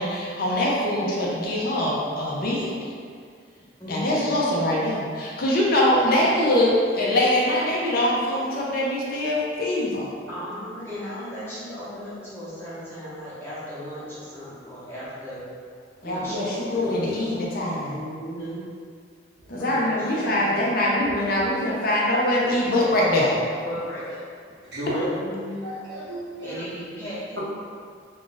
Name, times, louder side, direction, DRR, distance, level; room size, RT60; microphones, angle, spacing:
voice 1, 0.0-2.8 3.9-10.1 16.0-18.0 19.5-23.3, left 1 dB, 50° left, -4 dB, 0.5 m, -23 dB
voice 2, 0.8-1.4 3.8-4.3 10.3-15.5 16.0-17.3 17.9-18.6 19.6-20.8 23.7-24.3 25.0-25.7 26.4-27.4, equal, 15° left, -11 dB, 0.8 m, -36 dB
voice 3, 24.6-25.1 25.6-26.6 27.4-27.5, right 1 dB, 70° right, -13 dB, 0.7 m, -33 dB
2.4 x 2.3 x 3.8 m, 2.1 s
head